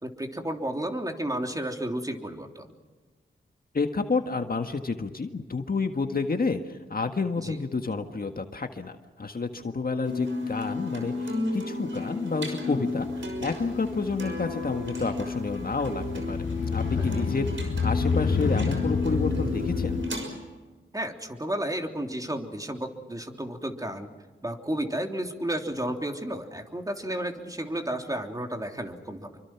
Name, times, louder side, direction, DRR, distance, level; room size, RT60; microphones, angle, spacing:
voice 1, 0.0-2.7 7.4-7.6 17.0-17.2 20.9-24.1 24.4-29.4, right 1 dB, 15° right, 3 dB, 3.4 m, -32 dB
voice 2, 3.7-16.4 16.7-20.0, left 4 dB, 45° left, 6 dB, 1.7 m, -30 dB
sound 1, 10.0-20.3, left 2 dB, 65° right, 6.0 m, -33 dB
Motorcycle, 13.0-20.1, left 5 dB, 75° left, 2.2 m, -30 dB
27.0 x 24.0 x 6.0 m, 1.3 s
cardioid pair, 50°, 21 cm